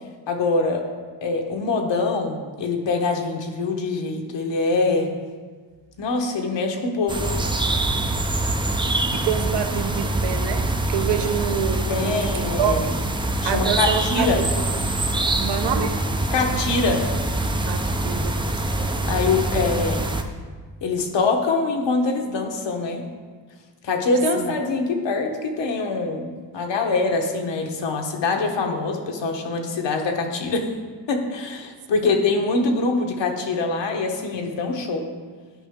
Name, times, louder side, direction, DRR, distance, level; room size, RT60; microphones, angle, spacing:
voice 1, 0.3-0.8 1.2-5.1 6.0-7.5 11.9-12.9 13.4-14.5 16.3-17.1 19.0-20.1 20.8-23.1 23.8-30.7 31.1-35.1, left 3 dB, 65° left, 3 dB, 1.2 m, -24 dB
sound 1, 7.1-20.2, right 1 dB, 10° right, 0.5 m, -24 dB
voice 2, 9.1-13.0 13.4-14.6 15.4-16.0 17.6-18.4 24.4-24.5 32.0-32.1, right 8 dB, 60° right, 7 dB, 0.9 m, -27 dB
11.0 x 5.0 x 3.6 m, 1.5 s
cardioid pair, 95°, 47 cm